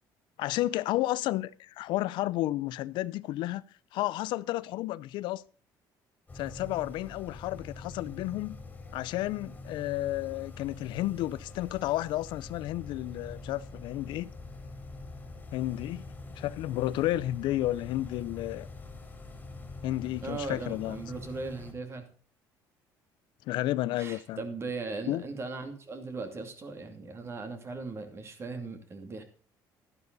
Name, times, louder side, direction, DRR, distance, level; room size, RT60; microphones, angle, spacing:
voice 1, 0.4-3.6 3.9-5.4 6.3-8.6 8.9-14.3 15.5-16.1 16.4-18.7 19.8-21.0 23.5-24.4 25.1-25.2, left 15 dB, 75° left, 0.5 m, -32 dB
sound 1, 6.3-21.7, left 3 dB, 20° left, 3.1 m, -45 dB
voice 2, 20.2-22.1 24.0-29.2, right 3 dB, 30° right, 2.6 m, -38 dB
12.0 x 11.0 x 4.0 m
cardioid pair, 125°, 8 cm